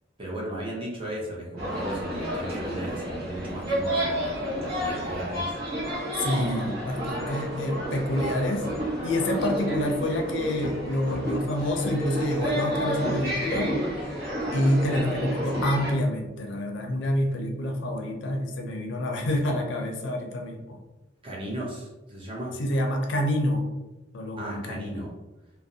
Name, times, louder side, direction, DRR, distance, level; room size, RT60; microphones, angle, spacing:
voice 1, 0.2-5.4 21.2-22.6 24.4-25.1, right 1 dB, 30° right, -4 dB, 0.7 m, -35 dB
sound 1, 1.6-15.9, equal, 55° right, 1.0 m, -30 dB
voice 2, 6.2-8.7 9.0-13.8 14.5-20.8 22.6-23.6 24.1-25.0, left 1 dB, 65° left, 2 dB, 0.4 m, -27 dB
2.4 x 2.0 x 2.6 m, 1.0 s
head